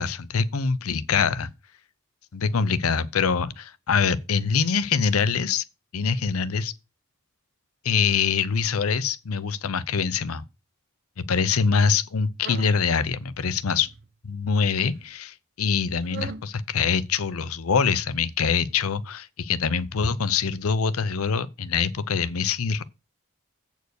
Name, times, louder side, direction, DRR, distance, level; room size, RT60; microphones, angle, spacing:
voice 1, 0.0-1.5 2.3-5.6 5.9-6.7 7.8-10.4 11.2-13.9 14.2-22.8, left 6 dB, 75° left, 0.6 m, -24 dB
sound 1, 12.4-12.8 13.4-14.1 14.8-15.1 16.0-16.5, right 5 dB, 50° right, 0.6 m, -39 dB
8.1 x 4.6 x 6.4 m
head